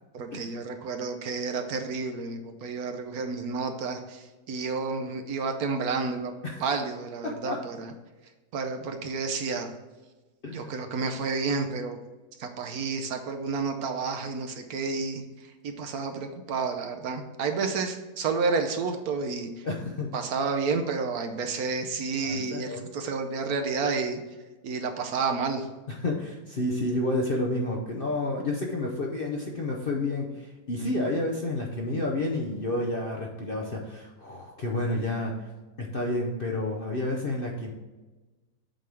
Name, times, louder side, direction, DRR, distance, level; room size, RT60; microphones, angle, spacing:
voice 1, 0.1-6.3 6.6-7.9 8.5-9.7 10.5-12.0 12.4-15.2 15.6-19.7 20.1-24.2 24.6-25.7, right 4 dB, 65° right, 5 dB, 1.2 m, -30 dB
voice 2, 7.2-7.6 10.4-10.8 19.6-20.1 22.2-22.8 25.9-35.4 35.8-37.7, left 2 dB, 50° left, -1 dB, 0.7 m, -30 dB
7.6 x 3.5 x 6.1 m, 1.2 s
omnidirectional pair, 1.8 m